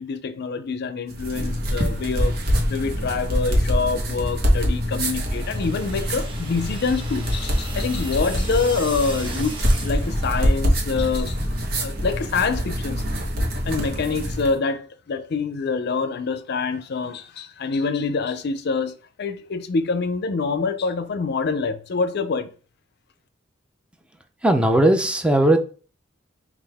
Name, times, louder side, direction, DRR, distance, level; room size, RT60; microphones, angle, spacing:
voice 1, 0.0-2.4 2.7-9.5 9.8-11.4 11.8-13.0 13.7-22.5, left 4 dB, 60° left, 0.5 m, -26 dB
sound 1, 1.1-14.5, equal, 50° right, 1.1 m, -24 dB
sound 2, 5.0-10.8, right 2 dB, 25° right, 1.1 m, -39 dB
voice 2, 24.4-25.6, right 1 dB, 5° right, 0.4 m, -17 dB
5.5 x 2.4 x 3.4 m
head